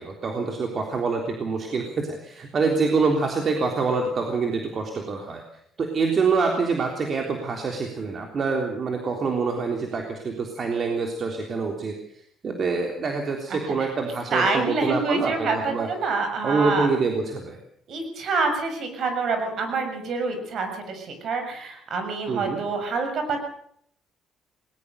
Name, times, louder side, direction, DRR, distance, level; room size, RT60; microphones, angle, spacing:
voice 1, 0.0-5.4 5.8-15.9 16.4-17.6 22.3-22.6, right 4 dB, 45° right, 2 dB, 3.5 m, -26 dB
voice 2, 13.5-13.9 14.3-16.9 17.9-23.4, right 3 dB, 60° right, 6 dB, 6.6 m, -27 dB
20.5 x 19.0 x 6.7 m, 0.68 s
cardioid pair, 90°, 0 cm